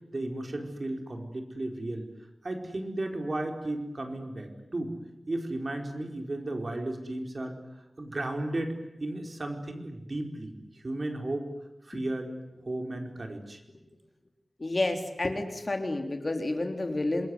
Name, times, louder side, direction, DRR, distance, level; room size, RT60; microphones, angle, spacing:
voice 1, 0.1-2.1 2.4-5.0 5.3-7.6 8.0-11.4 11.8-12.3 12.6-13.6, right 1 dB, 50° right, 3 dB, 4.8 m, -34 dB
voice 2, 14.6-17.3, left 2 dB, 45° left, 4 dB, 3.8 m, -30 dB
27.0 x 22.0 x 9.8 m, 0.95 s
wide cardioid pair, 75°, 0 cm